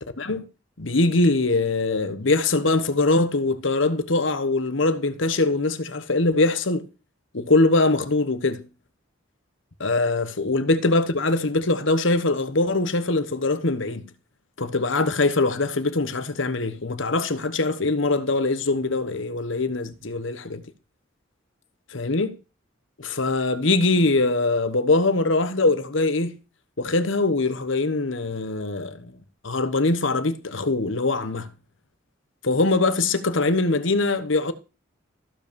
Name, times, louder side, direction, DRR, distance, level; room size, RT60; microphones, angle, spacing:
voice 1, 0.8-6.8 7.3-8.6 9.8-14.1 14.6-20.6 21.9-22.3 23.0-26.4 26.8-29.1 29.4-31.5 32.4-34.5, left 2 dB, 70° left, 1.2 m, -22 dB
14.5 x 5.4 x 6.9 m
head